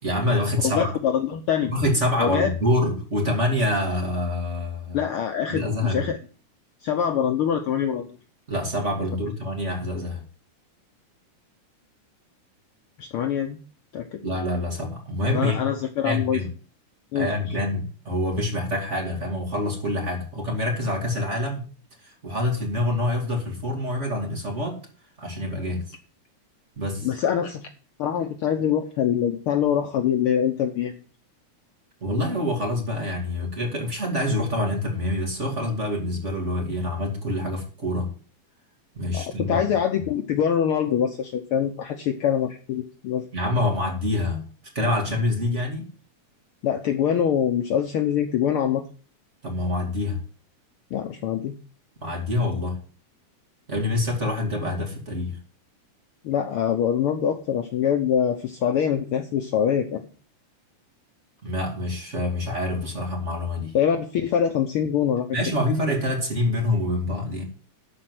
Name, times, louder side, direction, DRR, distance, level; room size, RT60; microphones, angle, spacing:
voice 1, 0.0-0.9 1.7-5.1 5.5-6.1 8.5-10.2 14.2-15.7 16.0-16.5 17.1-21.6 22.0-24.8 25.2-25.9 26.8-27.1 32.0-38.1 38.9-39.6 43.3-44.4 44.7-45.9 49.4-50.2 52.0-52.8 53.7-55.4 61.4-63.7 65.3-67.4, left 1 dB, 25° right, 2.4 m, -26 dB
voice 2, 0.6-1.7 2.2-2.5 4.9-6.2 6.8-8.1 13.0-13.6 13.9-14.2 15.3-16.4 17.1-17.6 27.0-27.7 28.0-30.9 39.1-43.3 46.6-48.8 50.9-51.5 56.2-60.0 63.7-65.4, left 8 dB, 85° left, 1.2 m, -24 dB
13.0 x 4.4 x 7.8 m
omnidirectional pair, 3.6 m